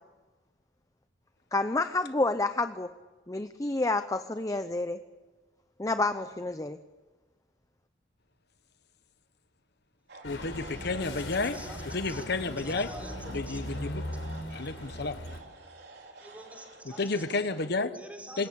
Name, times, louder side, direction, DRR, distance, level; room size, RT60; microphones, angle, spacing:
voice 1, 1.5-2.9 3.3-5.0 5.8-6.8, left 2 dB, 20° left, 10 dB, 0.7 m, -29 dB
sound 1, 10.1-17.7, right 3 dB, 60° right, 3.9 m, -50 dB
sound 2, 10.2-15.4, left 1 dB, 85° left, 4.6 m, -39 dB
voice 2, 10.2-11.6 11.9-12.9 13.3-14.0 14.5-15.2 17.0-18.0 18.4-18.5, left 3 dB, 60° left, 10 dB, 1.1 m, -31 dB
voice 3, 12.6-13.6 16.2-17.2 17.9-18.5, right 1 dB, 10° right, 3 dB, 5.0 m, -47 dB
26.0 x 22.0 x 8.6 m, 1.3 s
head